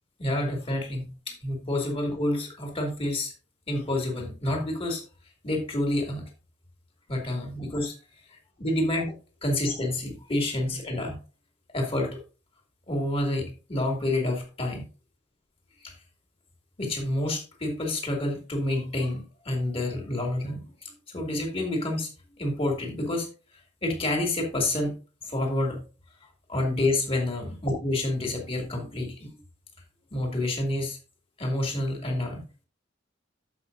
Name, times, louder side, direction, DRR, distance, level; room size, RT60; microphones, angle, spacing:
voice 1, 0.2-3.3 3.7-5.0 5.4-6.2 7.1-8.0 8.3-9.1 9.4-11.2 11.7-12.2 12.9-14.8 15.8-15.9 16.8-22.1 22.4-23.3 23.8-24.9 25.2-25.8 26.5-29.4 30.1-31.0 31.4-32.4, left 1 dB, 30° left, 1 dB, 2.6 m, -28 dB
14.0 x 6.0 x 2.7 m, 0.34 s
head